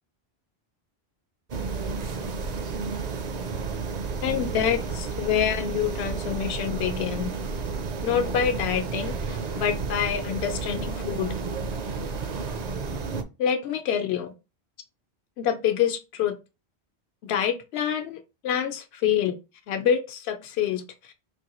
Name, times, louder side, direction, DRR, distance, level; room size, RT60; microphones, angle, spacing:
sound 1, 1.5-13.2, right 4 dB, 50° right, 0.5 m, -31 dB
voice 1, 4.2-7.3 8.0-11.3 13.4-14.3 15.4-16.3 17.2-19.3 19.7-21.1, left 9 dB, 75° left, 0.9 m, -27 dB
4.4 x 2.7 x 2.9 m
omnidirectional pair, 1.1 m